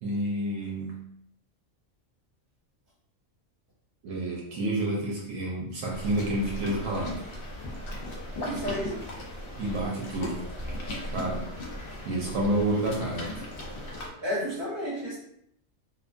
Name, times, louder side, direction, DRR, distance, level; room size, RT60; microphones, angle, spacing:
voice 1, 0.0-1.1 4.0-7.3 9.6-10.4 11.1-11.5 12.0-13.5, right 1 dB, 80° right, -3 dB, 1.0 m, -29 dB
sound 1, 5.9-14.1, left 1 dB, 55° left, 0.7 m, -37 dB
voice 2, 8.4-9.0 14.2-15.2, equal, 40° right, -6 dB, 1.1 m, -32 dB
2.7 x 2.2 x 2.4 m, 0.72 s
omnidirectional pair, 1.3 m